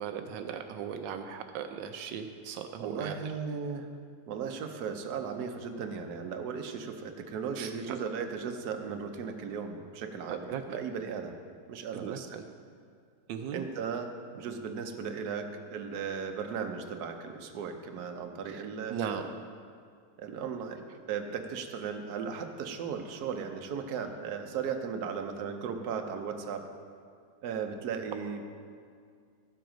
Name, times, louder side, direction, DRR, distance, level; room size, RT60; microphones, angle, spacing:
voice 1, 0.0-3.2 7.6-8.0 10.3-10.6 11.9-12.4 13.3-13.7 18.5-18.6 18.9-19.3, right 8 dB, 85° right, 7 dB, 1.3 m, -37 dB
voice 2, 2.8-3.9 4.3-11.3 11.7-12.3 13.5-19.3 20.2-26.6 27.4-28.4, right 6 dB, 65° right, 5 dB, 1.3 m, -36 dB
13.5 x 7.6 x 5.1 m, 2.2 s
omnidirectional pair, 1.9 m